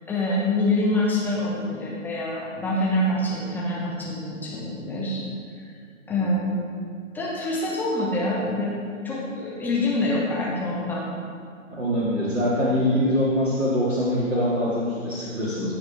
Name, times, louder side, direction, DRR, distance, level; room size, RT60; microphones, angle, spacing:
voice 1, 0.1-5.2 6.1-6.7 7.1-8.7 9.0-11.0, left 1 dB, 5° left, -6 dB, 0.9 m, -25 dB
voice 2, 11.7-15.7, equal, 75° right, -8 dB, 2.3 m, -24 dB
15.5 x 6.1 x 3.4 m, 2.1 s
figure-of-eight pair, 125°, 40 cm